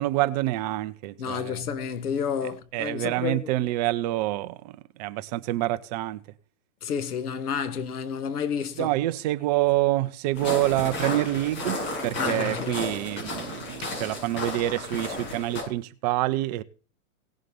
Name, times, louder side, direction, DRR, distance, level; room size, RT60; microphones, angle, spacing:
voice 1, 0.0-1.6 2.7-6.2 8.8-11.8 12.0-16.6, right 16 dB, 30° right, 0.6 m, -27 dB
voice 2, 1.2-3.5 6.8-8.9 12.2-12.8, left 7 dB, 85° left, 1.8 m, -30 dB
sound 1, 10.3-15.6, left 2 dB, 35° left, 7.8 m, -33 dB
18.0 x 7.4 x 5.3 m
hypercardioid pair, 150°, 44 cm